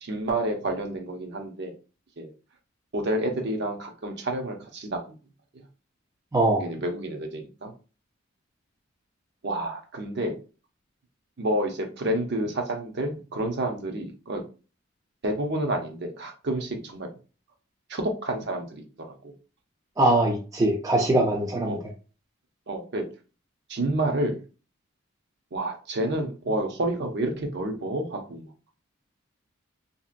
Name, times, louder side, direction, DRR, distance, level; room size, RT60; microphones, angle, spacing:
voice 1, 0.0-1.7 2.2-2.3 2.9-5.2 6.6-7.7 9.4-10.4 11.4-14.4 15.2-17.1 17.9-18.8 19.2-19.3 21.6-21.8 22.7-23.1 23.7-24.4 25.5-28.5, right 1 dB, 55° right, 3 dB, 0.6 m, -29 dB
voice 2, 6.3-6.6 20.0-21.8, right 1 dB, 15° right, 1 dB, 0.4 m, -22 dB
2.9 x 2.7 x 2.5 m, 0.35 s
head